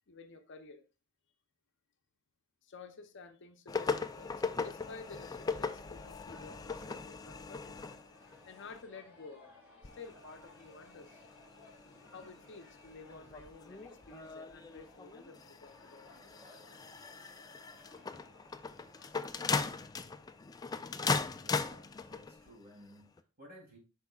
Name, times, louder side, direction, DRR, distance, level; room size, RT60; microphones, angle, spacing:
voice 1, 0.1-0.8 2.6-7.8 8.5-9.5 9.9-11.2 12.1-16.1, left 4 dB, 55° left, 0.7 m, -52 dB
sound 1, 3.7-8.8 9.8-22.5 23.2-23.3, left 4 dB, 15° left, 0.3 m, -39 dB
sound 2, 3.8-19.2, left 1 dB, 10° right, 2.7 m, -60 dB
voice 2, 21.3-23.8, equal, 45° right, 3.0 m, -56 dB
8.1 x 5.5 x 2.4 m
head